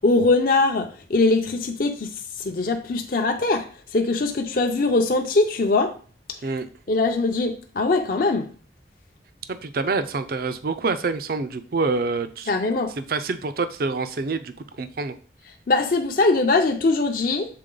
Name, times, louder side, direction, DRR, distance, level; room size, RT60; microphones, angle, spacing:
voice 1, 0.0-3.7 3.9-5.9 6.9-8.5 12.5-12.9 15.7-17.5, left 3 dB, 50° left, 4 dB, 0.5 m, -21 dB
voice 2, 9.5-12.5 13.0-15.2, right 4 dB, 55° right, 10 dB, 0.5 m, -26 dB
6.7 x 3.8 x 3.8 m, 0.41 s
head